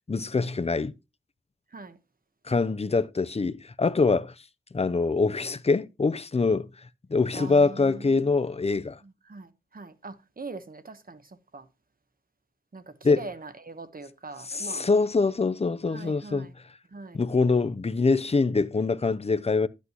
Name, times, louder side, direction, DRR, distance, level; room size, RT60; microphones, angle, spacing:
voice 1, 0.1-0.9 2.4-4.3 4.7-6.7 7.1-9.0 13.0-13.2 14.5-16.5 17.1-19.7, left 4 dB, 30° left, 0.5 m, -24 dB
voice 2, 7.3-8.5 9.0-11.7 12.7-14.9 15.9-16.5 16.9-17.2, right 3 dB, 45° right, 1.1 m, -42 dB
11.0 x 8.4 x 2.9 m
wide cardioid pair, 85°, 20 cm